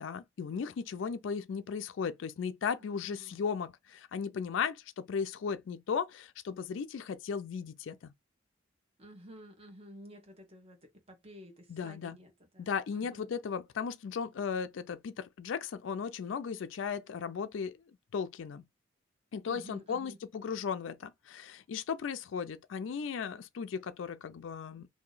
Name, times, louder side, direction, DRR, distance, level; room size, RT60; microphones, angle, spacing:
voice 1, 0.0-8.1 11.7-12.2 12.6-17.8 18.1-18.6 19.3-24.9, left 6 dB, 75° left, 0.4 m, -36 dB
voice 2, 2.8-3.4 9.0-13.3 19.4-20.2, equal, 30° right, 1.1 m, -52 dB
2.8 x 2.6 x 3.9 m
head